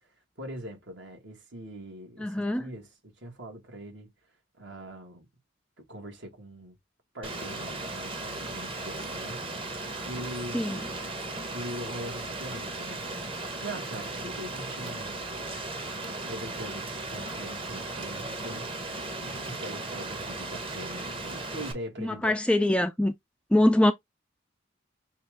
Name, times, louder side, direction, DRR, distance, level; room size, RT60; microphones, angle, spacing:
voice 1, 0.4-4.1 4.6-5.3 5.8-6.8 7.1-10.9 11.5-15.5 16.3-22.4, right 1 dB, 65° right, 1.7 m, -42 dB
voice 2, 2.2-2.6 10.5-10.8 22.0-23.1 23.5-23.9, left 1 dB, 5° left, 0.3 m, -23 dB
Rain, 7.2-21.7, right 2 dB, 25° right, 0.9 m, -36 dB
5.4 x 2.5 x 3.4 m
head